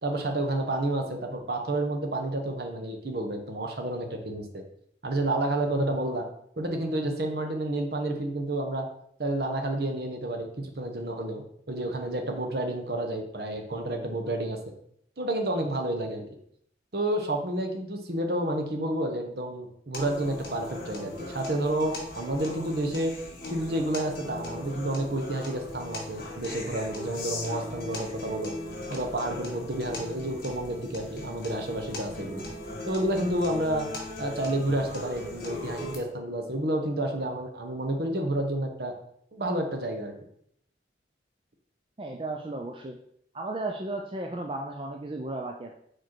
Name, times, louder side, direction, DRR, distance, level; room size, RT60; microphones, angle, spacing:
voice 1, 0.0-4.6 5.0-6.3 6.6-8.9 9.2-11.4 11.7-14.6 15.2-16.2 16.9-23.1 23.5-28.5 28.9-32.4 32.9-33.9 34.2-38.9 39.3-40.1, right 1 dB, 60° right, 3 dB, 1.0 m, -30 dB
sound 1, 19.9-36.0, left 2 dB, 50° left, 1.9 m, -38 dB
voice 2, 42.0-43.0 43.3-45.7, right 2 dB, 30° right, 2 dB, 0.4 m, -34 dB
4.9 x 4.4 x 4.5 m, 0.68 s
head